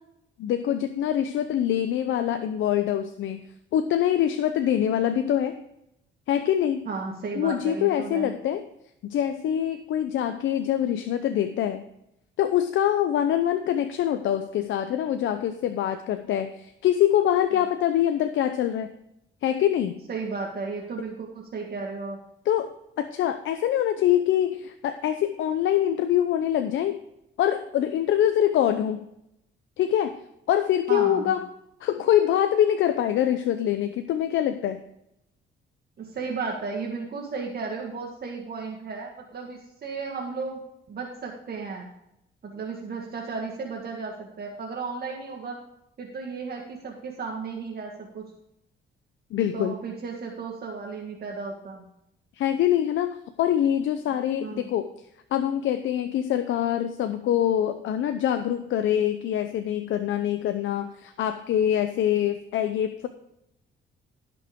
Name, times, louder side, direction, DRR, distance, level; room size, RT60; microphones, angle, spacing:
voice 1, 0.4-3.5 3.7-5.6 6.3-6.9 7.4-8.6 9.0-11.8 12.4-18.9 19.4-20.0 22.5-27.0 27.4-29.1 29.8-30.2 30.5-31.5 31.8-34.8 49.3-49.8 52.4-54.9 55.3-63.1, left 10 dB, 75° left, 8 dB, 0.7 m, -24 dB
voice 2, 6.8-8.4 20.1-22.2 30.9-31.4 36.0-40.6 40.9-41.9 42.4-45.6 46.0-48.2 49.5-51.8 54.1-54.7, right 4 dB, 50° right, -1 dB, 1.8 m, -34 dB
15.5 x 6.1 x 3.7 m, 0.81 s
cardioid pair, 90°, 20 cm